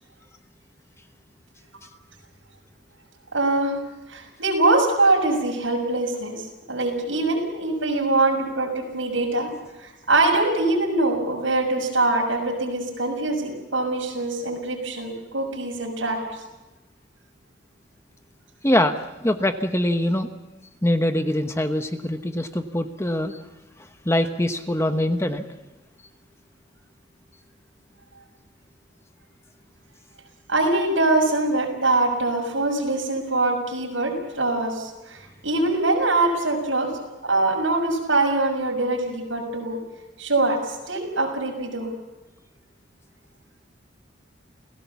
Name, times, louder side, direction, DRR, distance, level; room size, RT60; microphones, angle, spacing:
voice 1, 3.3-3.7 4.1-9.5 9.8-16.2 30.5-36.9 37.2-39.8 40.2-41.9, right 2 dB, 75° right, 1 dB, 6.6 m, -23 dB
voice 2, 18.6-20.3 20.8-23.4 24.0-25.4, left 1 dB, 15° left, 7 dB, 1.0 m, -23 dB
29.0 x 17.0 x 7.1 m, 1.1 s
head